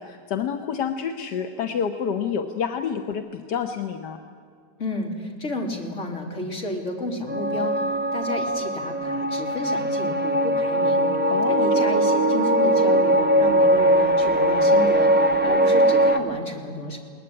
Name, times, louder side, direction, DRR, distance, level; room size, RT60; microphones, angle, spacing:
voice 1, 0.0-4.2 11.3-11.9, left 7 dB, 75° left, 6 dB, 1.6 m, -28 dB
voice 2, 4.8-7.7 8.1-11.1 11.5-17.0, left 1 dB, 45° left, 2 dB, 3.5 m, -31 dB
sound 1, 7.3-16.2, right 1 dB, 5° right, 1.0 m, -20 dB
21.0 x 19.5 x 9.8 m, 2.3 s
omnidirectional pair, 1.8 m